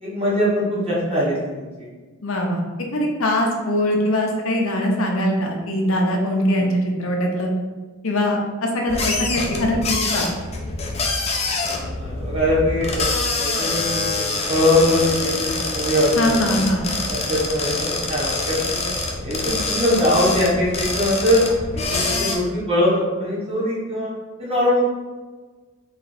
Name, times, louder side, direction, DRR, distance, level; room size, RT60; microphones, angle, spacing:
voice 1, 0.0-1.9 6.6-6.7 11.7-16.5 17.1-18.9 19.2-21.4 21.7-24.1 24.4-24.8, left 1 dB, 25° right, -7 dB, 1.3 m, -22 dB
voice 2, 2.2-2.6 2.9-7.5 8.0-10.3 16.2-16.9, left 1 dB, 65° left, 0 dB, 0.7 m, -22 dB
sound 1, 8.9-22.4, left 3 dB, 30° left, 0.5 m, -25 dB
3.4 x 3.2 x 4.0 m, 1.3 s
head